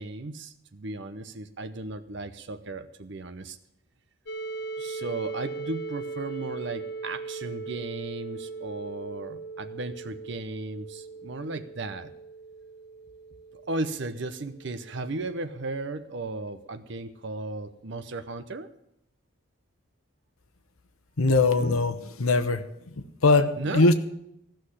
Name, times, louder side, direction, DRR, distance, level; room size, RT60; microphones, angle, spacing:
voice 1, 0.0-3.6 4.8-12.1 13.5-18.7 23.6-23.9, right 2 dB, 55° right, 11 dB, 0.7 m, -35 dB
sound 1, 4.3-16.0, right 4 dB, 50° left, 0.8 m, -39 dB
voice 2, 21.2-22.6 23.2-23.9, left 3 dB, 85° left, 9 dB, 1.0 m, -21 dB
15.0 x 6.4 x 9.8 m, 0.78 s
head